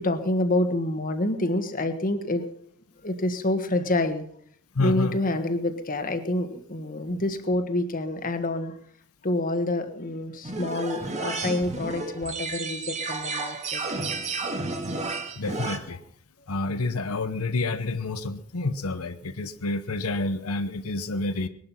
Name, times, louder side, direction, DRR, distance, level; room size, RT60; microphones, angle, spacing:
voice 1, 0.0-2.5 3.0-4.3 4.8-8.7 9.2-13.8, left 1 dB, 40° left, 8 dB, 1.6 m, -27 dB
voice 2, 4.7-5.2 15.4-16.0 16.5-21.5, left 2 dB, 80° left, 9 dB, 0.9 m, -28 dB
sound 1, 10.4-15.8, right 3 dB, 35° right, 1.8 m, -32 dB
20.0 x 11.5 x 5.7 m, 0.66 s
head